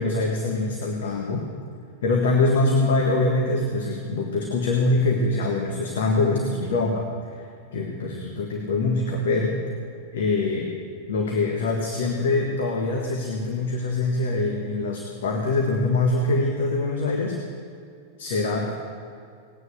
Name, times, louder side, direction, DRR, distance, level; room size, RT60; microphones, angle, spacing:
voice 1, 0.0-1.5 2.0-7.1 7.7-9.6 10.1-10.8 11.1-17.4 18.2-18.7, left 2 dB, 60° left, 1 dB, 1.6 m, -24 dB
19.0 x 9.7 x 6.5 m, 2.4 s
figure-of-eight pair, 90°, 0 cm